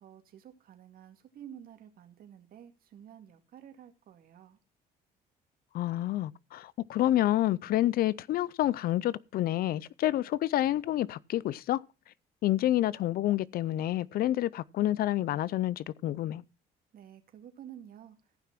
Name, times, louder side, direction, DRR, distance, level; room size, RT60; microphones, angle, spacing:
voice 1, 0.0-4.6 16.9-18.2, right 10 dB, 60° right, 2.2 m, -51 dB
voice 2, 5.7-11.8 12.4-16.4, left 14 dB, 60° left, 0.5 m, -28 dB
14.5 x 6.0 x 5.9 m
cardioid pair, 110°, 17 cm